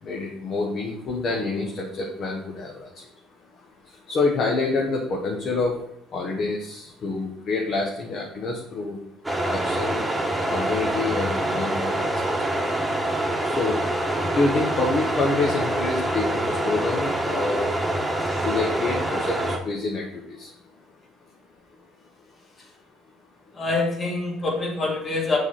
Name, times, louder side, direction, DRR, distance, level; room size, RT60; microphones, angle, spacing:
voice 1, 0.0-2.9 4.1-5.8 6.1-9.0 9.4-10.1 10.5-12.0 13.4-13.8 14.3-17.7 18.4-20.5, left 3 dB, 55° left, -1 dB, 1.1 m, -27 dB
sound 1, 9.2-19.6, right 1 dB, 5° right, 1.3 m, -25 dB
voice 2, 23.6-25.4, left 3 dB, 35° left, 0 dB, 2.0 m, -25 dB
6.1 x 3.7 x 5.5 m, 0.77 s
supercardioid pair, 70°, 0 cm